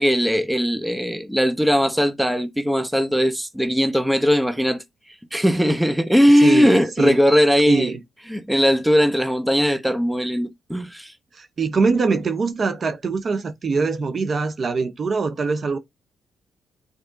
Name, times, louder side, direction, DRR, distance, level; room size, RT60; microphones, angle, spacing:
voice 1, 0.0-4.8 5.3-7.9 8.3-11.1, equal, 5° right, 0.8 m, -19 dB
voice 2, 6.4-7.2 7.7-8.0 11.3-15.8, right 4 dB, 40° right, 0.8 m, -23 dB
8.9 x 4.2 x 2.7 m
cardioid pair, 90°, 0 cm